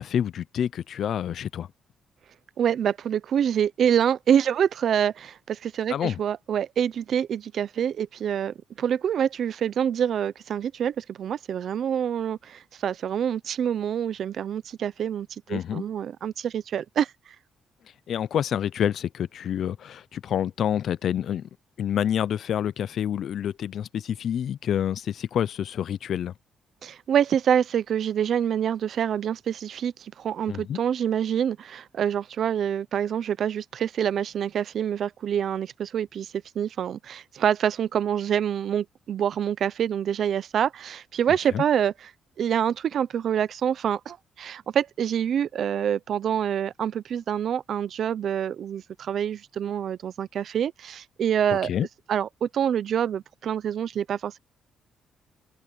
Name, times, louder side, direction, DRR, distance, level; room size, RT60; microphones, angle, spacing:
voice 1, 0.0-1.7 5.9-6.2 15.5-15.8 18.1-21.4 21.8-26.3 30.5-30.8 41.5-41.6 51.6-51.9, left 9 dB, 65° left, 0.7 m, -27 dB
voice 2, 2.6-17.1 26.8-42.1 42.4-51.7 52.1-54.4, right 9 dB, 60° right, 0.8 m, -26 dB
cardioid pair, 90°, 0 cm